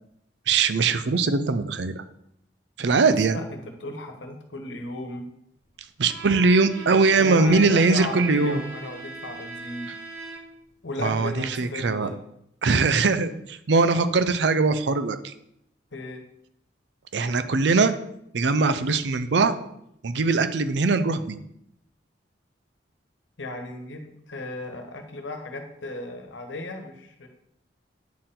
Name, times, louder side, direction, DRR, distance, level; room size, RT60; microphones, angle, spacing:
voice 1, 0.5-2.0 2.8-3.4 6.0-8.6 11.0-12.1 12.6-15.3 17.1-17.9 18.3-19.6 20.0-21.4, right 4 dB, 65° right, 12 dB, 0.5 m, -21 dB
voice 2, 3.0-5.3 7.2-9.9 10.8-12.1 15.9-16.2 23.4-27.3, left 2 dB, 85° left, 5 dB, 1.2 m, -35 dB
Bowed string instrument, 6.0-10.7, right 3 dB, 85° right, 1.4 m, -40 dB
9.3 x 4.5 x 3.8 m, 0.76 s
head